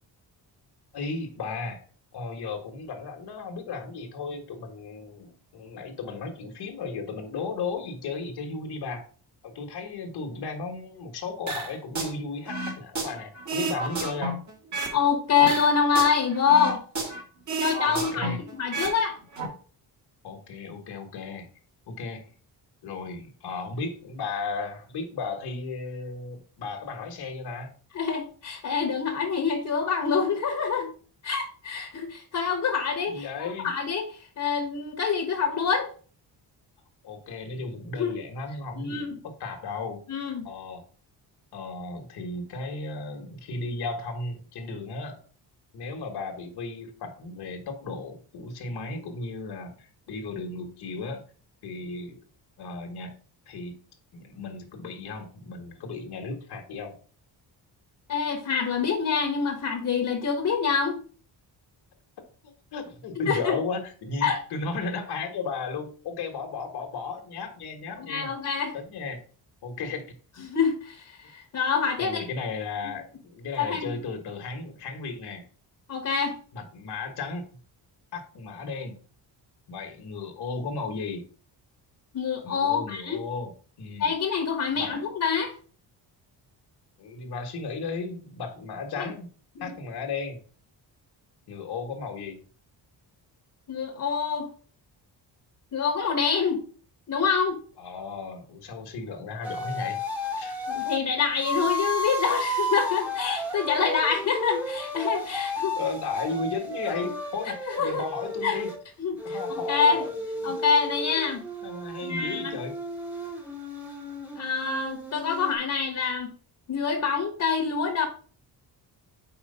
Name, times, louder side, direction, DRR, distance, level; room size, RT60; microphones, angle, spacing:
voice 1, 0.9-1.8 2.1-9.0 9.4-14.4 17.8-18.4 20.2-21.5 21.9-22.2 22.8-27.7 33.1-33.8 37.0-40.0 40.4-40.8 41.5-45.2 45.7-51.2 51.6-52.2 52.6-53.1 53.5-53.8 54.1-57.0 62.4-68.3 68.7-69.2 69.6-70.0 72.0-75.4 76.5-77.4 78.1-79.0 79.7-81.2 82.4-83.5 83.8-84.1 84.7-84.9 87.0-89.3 89.6-90.4 91.5-92.4 97.8-100.0 100.4-100.6 105.7-108.7 109.2-110.5 111.6-112.7, left 4 dB, 65° left, 4 dB, 1.4 m, -35 dB
sound 1, 11.5-12.1 12.5-15.0 15.4-17.2 17.5-19.0 19.2-19.5, right 2 dB, 45° right, 1.7 m, -31 dB
voice 2, 14.9-16.8 17.6-19.1 27.9-30.9 31.2-34.1 34.4-35.9 38.0-38.1 38.8-39.2 40.1-40.5 58.1-61.0 63.2-63.6 64.2-64.4 68.0-68.7 70.4-72.3 72.8-72.9 73.6-73.9 75.9-76.4 82.1-83.2 84.0-85.5 89.0-89.1 89.6-89.7 93.7-94.5 95.7-96.6 97.1-97.6 100.7-105.7 107.7-108.0 108.4-108.6 109.0-109.4 109.7-110.0 110.4-111.4 112.0-112.6 114.3-116.3 116.7-118.0, left 6 dB, 45° left, 4 dB, 1.1 m, -26 dB
sound 2, 99.4-101.0 101.4-108.8 109.2-115.6, left 1 dB, 5° right, 1.0 m, -33 dB
4.9 x 4.4 x 5.4 m, 0.41 s
wide cardioid pair, 170°, 41 cm